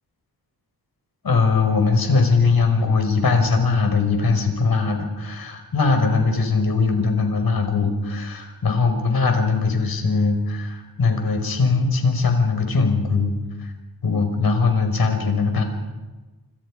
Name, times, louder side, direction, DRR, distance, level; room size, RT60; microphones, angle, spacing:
voice 1, 1.2-13.7 14.0-15.6, left 4 dB, 65° left, 5 dB, 5.7 m, -20 dB
28.0 x 27.5 x 5.2 m, 1.2 s
wide cardioid pair, 115°, 39 cm